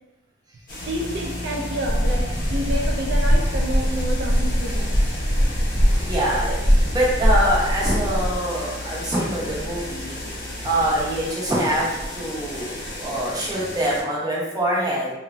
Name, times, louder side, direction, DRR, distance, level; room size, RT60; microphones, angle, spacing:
sound 1, 0.7-14.0, left 1 dB, 45° left, 0.8 m, -35 dB
sound 2, 0.8-11.3, left 1 dB, 85° left, 0.6 m, -35 dB
voice 1, 0.8-5.0, equal, 60° right, -1 dB, 0.3 m, -29 dB
sound 3, 1.8-8.4, equal, 15° left, 0.4 m, -21 dB
voice 2, 5.9-10.2 10.6-15.1, right 1 dB, 20° right, -6 dB, 0.7 m, -24 dB
3.1 x 2.1 x 2.5 m, 1.0 s
head